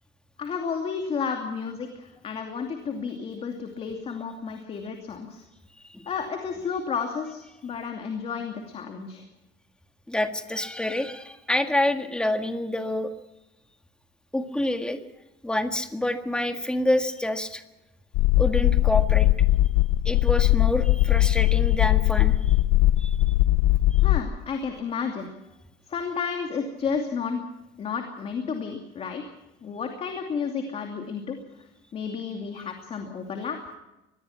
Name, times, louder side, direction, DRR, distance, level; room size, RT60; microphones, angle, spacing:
voice 1, 0.4-5.4 6.1-9.2 24.0-25.3 25.9-27.4 27.8-29.2 29.6-31.4 31.9-33.6, left 6 dB, 30° left, 4 dB, 2.7 m, -32 dB
voice 2, 10.1-13.1 14.3-15.0 15.4-17.6 18.4-19.3 20.0-22.5 23.0-23.2, left 1 dB, 5° left, 6 dB, 1.7 m, -27 dB
sound 1, 18.1-24.2, left 15 dB, 85° left, 0.9 m, -20 dB
24.5 x 20.0 x 5.9 m, 0.96 s
cardioid pair, 165°, 19 cm